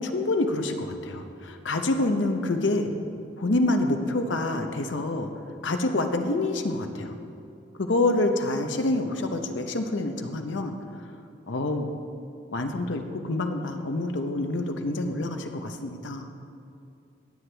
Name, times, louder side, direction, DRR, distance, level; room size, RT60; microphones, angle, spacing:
voice 1, 0.0-2.9 3.4-5.3 5.6-7.1 7.8-10.8 11.5-11.9 12.5-16.3, left 2 dB, 75° left, 6 dB, 0.8 m, -27 dB
17.5 x 7.9 x 3.4 m, 2.6 s
head